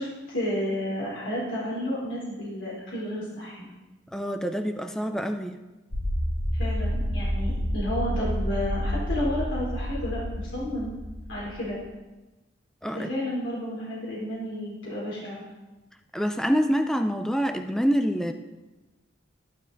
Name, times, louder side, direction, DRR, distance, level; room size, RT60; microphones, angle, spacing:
voice 1, 0.0-3.7 6.5-10.9 11.3-11.8 12.9-15.4, left 1 dB, 90° left, -6 dB, 3.8 m, -31 dB
voice 2, 4.1-5.6 12.8-13.1 16.1-18.3, equal, 5° left, 7 dB, 0.5 m, -26 dB
sound 1, 5.9-11.7, equal, 60° left, 1.8 m, -29 dB
12.0 x 12.0 x 4.0 m, 1.1 s
head